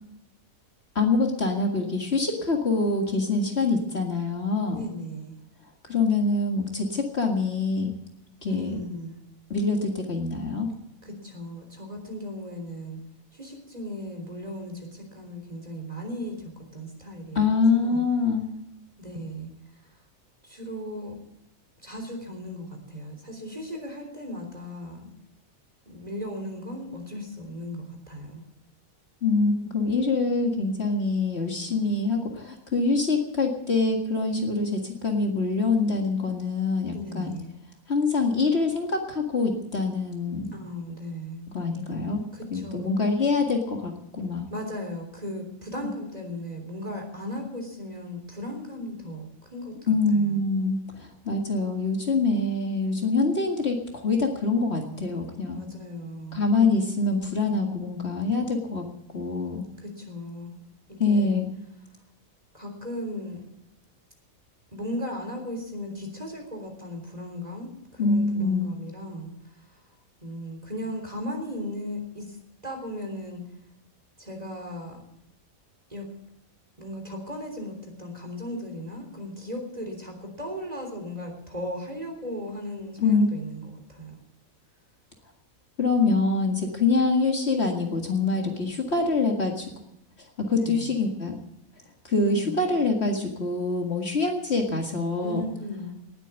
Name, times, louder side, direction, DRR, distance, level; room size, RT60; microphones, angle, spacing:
voice 1, 1.0-4.8 5.9-7.9 8.4-8.8 9.5-10.7 17.4-18.5 29.2-37.3 37.9-40.5 41.5-42.2 42.5-44.5 49.9-50.8 51.3-55.6 56.3-58.9 59.1-59.6 61.0-61.5 68.0-68.7 83.0-83.3 85.8-89.6 90.4-91.4 92.1-95.5, left 3 dB, 50° left, 2 dB, 2.2 m, -25 dB
voice 2, 4.7-5.4 8.5-9.2 11.0-13.0 13.3-17.4 17.7-18.0 19.0-19.5 20.5-21.1 21.8-25.1 25.9-28.4 36.9-37.5 40.5-41.4 42.3-42.9 44.5-49.3 49.5-49.7 50.1-50.4 55.5-56.5 59.8-60.6 60.9-61.4 62.5-63.4 64.7-69.3 70.2-72.4 72.6-73.4 74.2-75.0 75.9-76.1 76.8-84.1 90.6-90.9 92.2-92.6 95.2-96.0, equal, 25° right, 2 dB, 3.6 m, -36 dB
19.0 x 9.0 x 8.2 m, 0.84 s
omnidirectional pair, 1.5 m